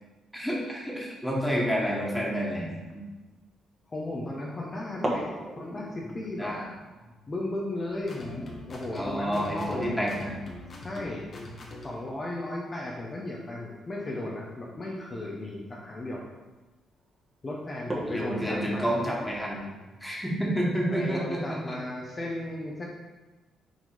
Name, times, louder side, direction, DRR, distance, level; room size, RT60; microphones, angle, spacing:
voice 1, 0.3-3.0 6.4-6.7 8.9-10.3 18.1-19.7 20.0-21.8, equal, ahead, -3 dB, 1.8 m, -29 dB
sound 1, 3.4-3.7 4.9-11.3 11.6-11.7 12.1-12.4 13.4-13.6 14.3-14.4 14.9-15.0 15.3-15.7 16.3-16.6 17.0-17.1 17.7-20.1, right 1 dB, 20° right, 1.5 m, -40 dB
voice 2, 3.9-6.5 7.3-10.1 10.8-11.3 11.8-16.3 17.4-18.9 20.9-22.9, left 1 dB, 30° left, -3 dB, 1.0 m, -35 dB
sound 2, 8.0-12.1, left 2 dB, 50° left, 1.4 m, -43 dB
6.2 x 3.8 x 5.1 m, 1.2 s
cardioid pair, 90°, 0 cm